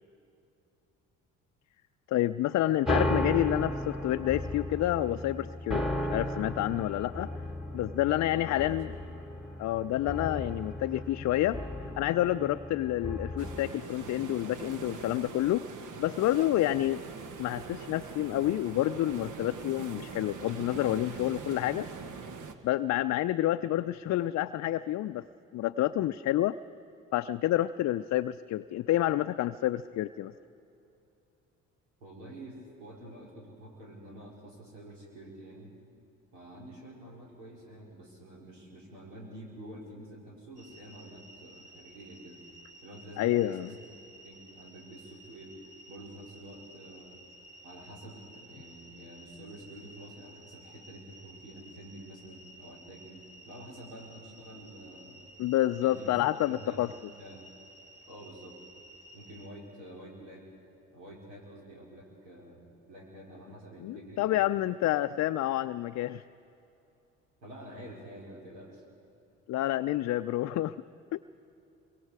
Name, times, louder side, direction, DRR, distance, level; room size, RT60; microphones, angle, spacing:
voice 1, 2.1-7.3 7.7-8.9 9.6-15.6 16.0-17.0 17.4-21.9 22.6-25.3 25.5-26.6 27.1-30.3 43.2-43.7 55.4-56.9 63.8-66.2 69.5-70.8 71.1-71.2, left 14 dB, 50° left, 9 dB, 0.5 m, -29 dB
sound 1, 2.9-13.7, left 1 dB, ahead, 1.6 m, -35 dB
voice 2, 8.3-8.7 9.0-9.1 32.0-35.7 36.3-42.4 42.8-44.0 44.2-45.6 45.9-47.2 47.6-55.2 55.8-56.2 56.4-56.9 57.2-57.5 58.1-58.6 59.1-60.5 60.9-64.5 67.4-68.8, right 1 dB, 90° right, -3 dB, 4.3 m, -48 dB
sound 2, 13.4-22.5, right 5 dB, 60° right, 1.5 m, -42 dB
sound 3, 40.6-59.5, right 1 dB, 20° right, 3.1 m, -54 dB
27.0 x 23.5 x 4.8 m, 2.8 s
hypercardioid pair, 55°, 35 cm